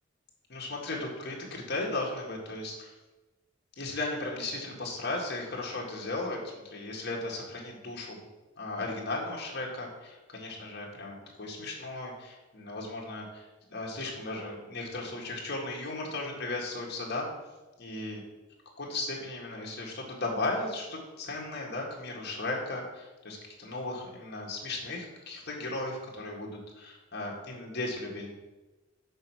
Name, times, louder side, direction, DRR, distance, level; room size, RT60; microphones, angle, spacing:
voice 1, 0.5-2.9 3.8-8.2 8.6-17.3 17.8-18.2 18.8-28.3, left 2 dB, 55° left, -2 dB, 1.8 m, -36 dB
6.5 x 4.5 x 6.2 m, 1.1 s
head